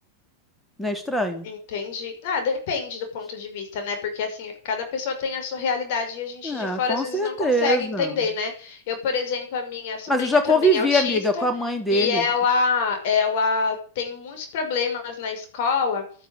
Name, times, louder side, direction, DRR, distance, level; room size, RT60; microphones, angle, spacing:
voice 1, 0.8-1.5 6.4-8.1 10.1-12.2, equal, 5° left, 6 dB, 3.5 m, -23 dB
voice 2, 1.4-11.4 11.9-16.0, left 5 dB, 50° left, 5 dB, 5.8 m, -27 dB
12.5 x 10.0 x 9.2 m, 0.43 s
figure-of-eight pair, 90°, 0 cm